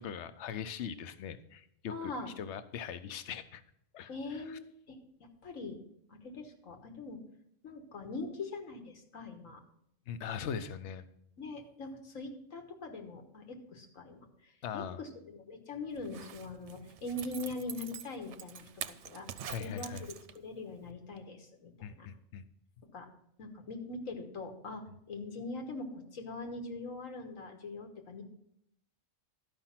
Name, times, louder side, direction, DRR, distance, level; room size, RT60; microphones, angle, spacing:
voice 1, 0.0-3.6 3.9-4.6 10.1-11.0 14.6-15.0 19.5-20.1 21.8-22.4, left 7 dB, 65° left, 12 dB, 0.9 m, -41 dB
voice 2, 1.9-2.3 4.1-5.0 5.4-5.8 6.1-7.2 7.6-9.6 11.4-14.3 14.7-18.7 19.0-19.3 19.6-19.9 20.4-22.1 22.9-23.1 23.4-28.2, left 2 dB, 85° left, 4 dB, 1.7 m, -42 dB
Zipper (clothing), 16.0-20.6 20.9-21.0, right 9 dB, 65° right, 0.8 m, -45 dB
12.5 x 5.4 x 5.8 m, 0.73 s
omnidirectional pair, 1.3 m